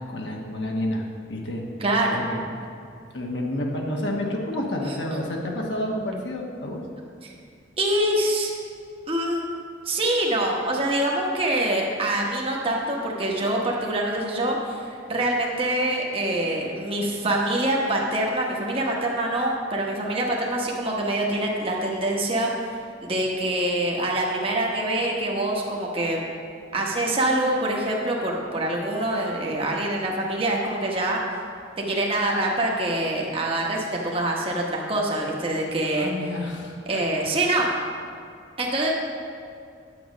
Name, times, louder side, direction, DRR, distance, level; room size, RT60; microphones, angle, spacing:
voice 1, 0.1-1.0 1.3-1.6 2.1-2.5 3.1-6.8 36.0-37.0, left 1 dB, 70° left, -1 dB, 1.2 m, -29 dB
voice 2, 1.8-2.2 4.9-5.0 7.8-8.5 9.1-9.5 9.9-22.5 23.0-26.3 26.7-31.2 31.8-36.1 36.9-37.7 38.6-38.9, right 1 dB, 30° right, -2 dB, 1.2 m, -25 dB
9.4 x 7.7 x 5.1 m, 2.3 s
head